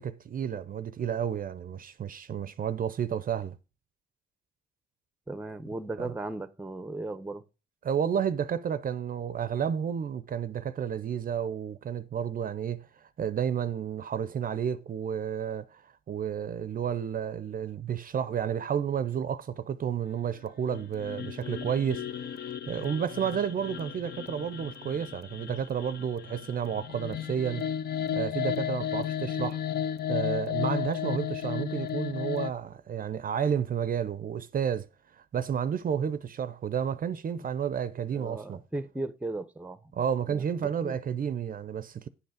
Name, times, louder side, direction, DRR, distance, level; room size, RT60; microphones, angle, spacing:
voice 1, 0.0-3.6 6.0-6.1 7.8-27.7 28.1-29.6 30.1-34.9 35.3-38.6 39.9-42.1, right 8 dB, 45° right, 0.6 m, -31 dB
voice 2, 5.3-7.4 38.1-39.9 40.3-41.0, right 2 dB, 5° right, 0.7 m, -37 dB
sound 1, 20.6-32.5, left 9 dB, 55° left, 0.6 m, -34 dB
9.9 x 5.5 x 4.9 m
cardioid pair, 90°, 20 cm